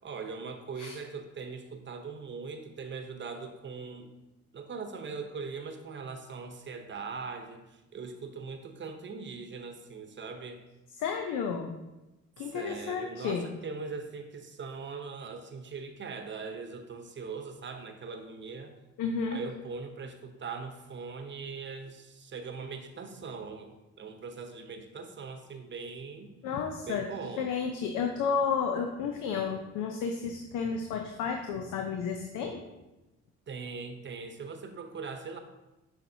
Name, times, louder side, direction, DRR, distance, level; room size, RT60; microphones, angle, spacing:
voice 1, 0.0-4.1 4.5-10.6 12.4-18.8 19.3-23.7 24.0-26.3 26.8-27.5 33.5-35.4, right 4 dB, 40° right, 6 dB, 0.8 m, -41 dB
voice 2, 11.0-11.7 12.4-13.5 19.0-19.4 26.4-27.0 27.4-32.6, left 6 dB, 90° left, 3 dB, 0.7 m, -32 dB
7.1 x 5.8 x 2.7 m, 1.0 s
cardioid pair, 90°, 30 cm